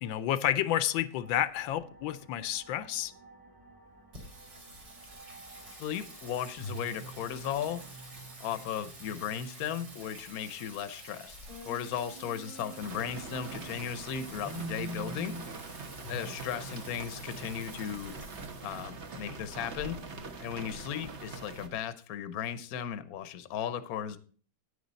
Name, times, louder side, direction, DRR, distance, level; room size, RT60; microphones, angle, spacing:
voice 1, 0.0-3.1, left 12 dB, 80° left, 1.3 m, -30 dB
sound 1, 1.2-8.3, right 2 dB, 15° right, 0.8 m, -55 dB
Singing, 4.1-21.7, right 1 dB, 65° right, 3.6 m, -46 dB
voice 2, 5.7-7.8 8.4-11.4 11.6-15.4 16.1-18.1 18.6-20.1 20.4-24.2, left 9 dB, 60° left, 1.1 m, -36 dB
sound 2, 12.8-21.7, right 3 dB, 45° right, 1.1 m, -44 dB
9.6 x 9.2 x 4.0 m
omnidirectional pair, 2.1 m